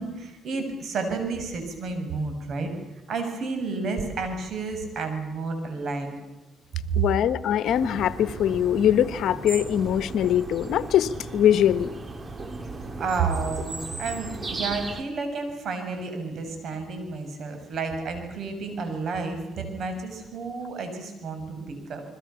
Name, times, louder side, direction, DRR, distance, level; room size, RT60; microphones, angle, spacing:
voice 1, 0.0-2.7 3.1-6.1 6.7-7.0 13.0-22.0, right 4 dB, 65° right, 6 dB, 7.3 m, -31 dB
voice 2, 7.0-11.9, left 10 dB, 75° left, 13 dB, 1.3 m, -22 dB
sound 1, 7.7-15.0, right 3 dB, 30° right, 2.6 m, -36 dB
30.0 x 22.0 x 7.1 m, 1.1 s
cardioid pair, 90°, 0 cm